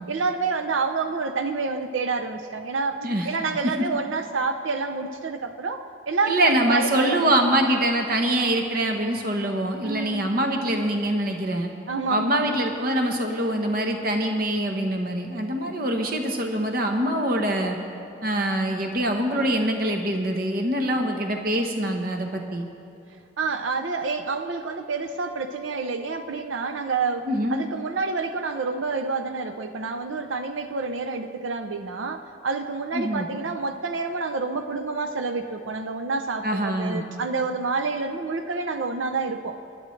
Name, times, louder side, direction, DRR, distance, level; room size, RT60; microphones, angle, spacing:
voice 1, 0.0-3.0 3.2-7.3 9.8-10.3 11.9-12.4 23.4-39.6, right 4 dB, 90° right, 6 dB, 0.6 m, -28 dB
voice 2, 6.3-11.7 12.1-17.8 18.2-22.7 27.3-27.6 32.9-33.3 36.4-37.0, right 1 dB, 50° right, 3 dB, 1.1 m, -24 dB
23.0 x 11.0 x 3.2 m, 2.6 s
head